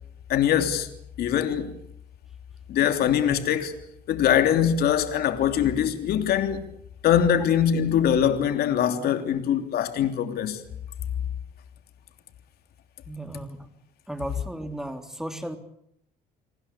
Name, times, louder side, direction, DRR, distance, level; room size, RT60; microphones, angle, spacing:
voice 1, 0.3-0.9 1.2-1.7 2.7-3.7 4.1-6.7 7.0-10.6, left 9 dB, 65° left, 3.2 m, -22 dB
voice 2, 13.1-13.7 14.1-15.6, right 1 dB, 5° right, 3.4 m, -35 dB
29.5 x 20.0 x 8.7 m
cardioid pair, 110°, 17 cm